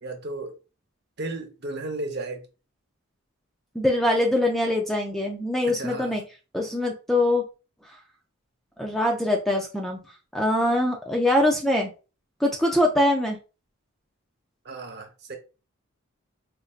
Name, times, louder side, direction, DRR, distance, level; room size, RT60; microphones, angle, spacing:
voice 1, 0.0-0.5 1.2-2.4 5.7-6.1 14.6-15.4, right 2 dB, 50° right, 0.7 m, -34 dB
voice 2, 3.8-6.2 6.5-7.4 8.8-10.0 10.3-11.9 12.4-13.4, left 1 dB, ahead, 0.4 m, -23 dB
4.4 x 2.6 x 2.4 m
head